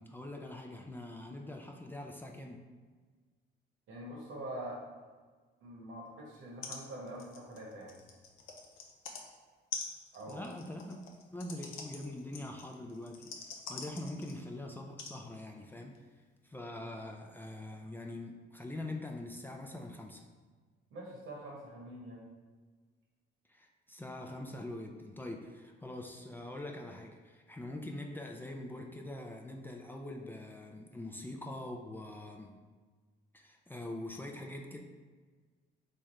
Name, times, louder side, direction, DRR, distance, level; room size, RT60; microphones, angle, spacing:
voice 1, 0.0-2.6 10.3-11.0 11.3-16.0 16.4-20.2 23.5-32.5 33.3-34.8, left 1 dB, 10° left, 1 dB, 0.4 m, -43 dB
voice 2, 3.9-4.8 5.6-8.0 10.1-10.5 16.8-16.9 20.9-22.3 30.7-30.9, right 1 dB, 80° right, -3 dB, 1.1 m, -45 dB
sound 1, 6.3-6.4 6.6-6.8 7.1-9.2 9.7-14.5 15.0-15.1 15.9-16.0, left 5 dB, 85° left, 0.6 m, -45 dB
3.2 x 2.4 x 4.2 m, 1.4 s
cardioid pair, 90°, 20 cm